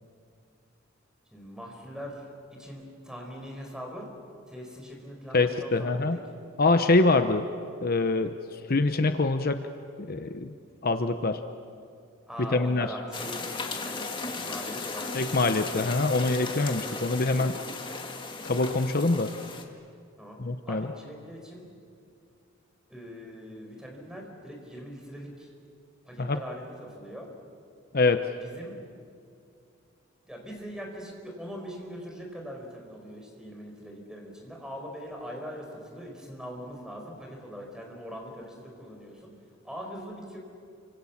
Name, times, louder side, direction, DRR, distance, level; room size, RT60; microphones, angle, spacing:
voice 1, 1.3-2.2 2.5-4.1 4.5-6.2 12.3-13.4 13.8-15.9 16.8-17.0 20.2-20.4 20.6-21.7 22.9-25.5 26.1-27.3 28.4-28.8 30.3-39.3 39.6-40.4, equal, 5° right, 1 dB, 4.9 m, -42 dB
voice 2, 5.3-6.2 6.6-7.4 7.8-9.6 10.0-10.5 10.8-11.4 12.4-12.9 15.1-17.6 18.4-19.3 20.4-20.9 26.2-26.4 27.9-28.3, left 3 dB, 50° left, 8 dB, 0.8 m, -25 dB
sound 1, 13.1-19.6, left 3 dB, 25° left, 2.0 m, -36 dB
28.5 x 25.5 x 7.3 m, 2.4 s
head